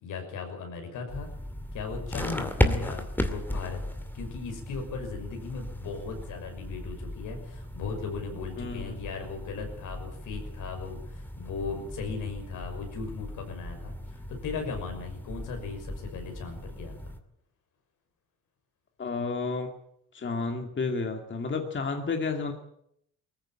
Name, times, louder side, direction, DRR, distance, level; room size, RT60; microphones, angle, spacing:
voice 1, 0.0-1.3 1.7-16.9, left 5 dB, 75° left, 4 dB, 6.0 m, -37 dB
sound 1, 1.1-17.2, left 1 dB, 5° left, 2.4 m, -35 dB
voice 2, 2.6-2.9 8.6-9.0 19.0-19.8 20.1-22.5, left 4 dB, 40° left, 4 dB, 2.5 m, -31 dB
19.5 x 15.0 x 8.8 m, 0.73 s
cardioid pair, 85°, 31 cm